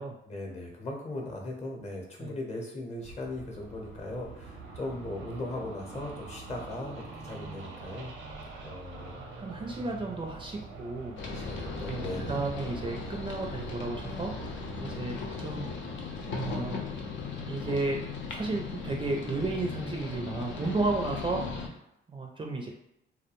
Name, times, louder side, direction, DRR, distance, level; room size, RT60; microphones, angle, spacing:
voice 1, 0.2-8.1 8.6-9.3 11.3-12.4, left 1 dB, 35° left, 0 dB, 0.8 m, -38 dB
sound 1, 3.0-15.1, right 4 dB, 85° right, 0.6 m, -45 dB
voice 2, 9.4-11.1 11.7-15.7 16.3-16.8 17.4-18.0 18.3-21.8 22.1-22.7, right 2 dB, 25° right, 0 dB, 0.4 m, -33 dB
sound 2, 11.2-21.7, left 4 dB, 70° left, 0.5 m, -37 dB
2.3 x 2.1 x 2.9 m, 0.79 s
cardioid pair, 90°, 20 cm